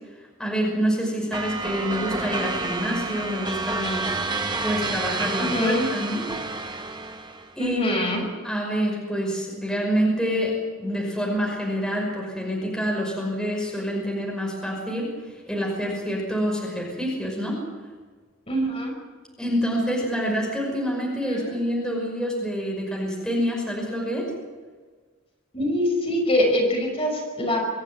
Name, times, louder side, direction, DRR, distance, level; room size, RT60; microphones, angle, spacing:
voice 1, 0.4-4.1 4.6-6.2 7.6-15.1 15.5-17.6 19.4-24.3, equal, 5° left, -2 dB, 5.6 m, -27 dB
sound 1, 1.3-7.5, right 3 dB, 20° right, 1.1 m, -29 dB
voice 2, 5.4-5.9 7.6-8.2 18.5-18.9 21.3-21.6 25.5-27.7, left 1 dB, 30° left, 0 dB, 5.9 m, -24 dB
24.5 x 14.5 x 9.3 m, 1.5 s
head